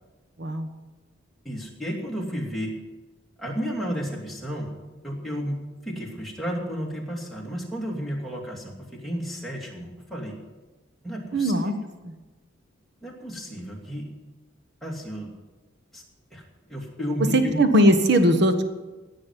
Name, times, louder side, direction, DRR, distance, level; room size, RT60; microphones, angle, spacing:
voice 1, 1.4-2.7 3.4-4.7 5.0-10.4 11.0-11.5 13.0-14.1 14.8-15.3 15.9-16.0 16.3-16.4 16.7-17.6, equal, ahead, -3 dB, 2.7 m, -32 dB
voice 2, 11.3-11.7 12.0-12.1 17.3-18.6, equal, 55° right, 7 dB, 1.3 m, -19 dB
17.0 x 6.5 x 9.2 m, 1.2 s
head